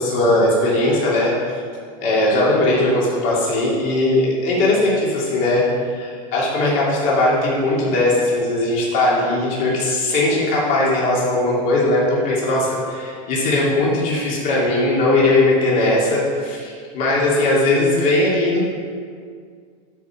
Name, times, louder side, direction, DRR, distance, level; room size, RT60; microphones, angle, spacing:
voice 1, 0.0-1.6 2.0-18.6, left 2 dB, 50° left, -6 dB, 2.9 m, -19 dB
12.5 x 5.5 x 6.0 m, 2.1 s
supercardioid pair, 150°, 18 cm